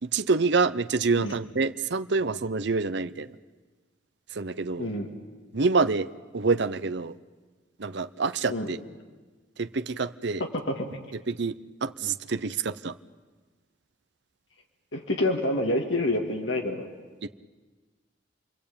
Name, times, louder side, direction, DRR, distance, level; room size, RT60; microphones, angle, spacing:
voice 1, 0.0-3.3 4.3-4.9 5.5-6.1 6.3-7.1 7.8-8.8 9.6-10.4 11.3-11.5 11.8-12.9 17.2-17.3, right 4 dB, 65° right, 11 dB, 0.8 m, -26 dB
voice 2, 10.4-10.9 14.9-16.9, left 1 dB, 80° left, 2 dB, 2.4 m, -27 dB
29.5 x 22.5 x 8.7 m, 1.3 s
head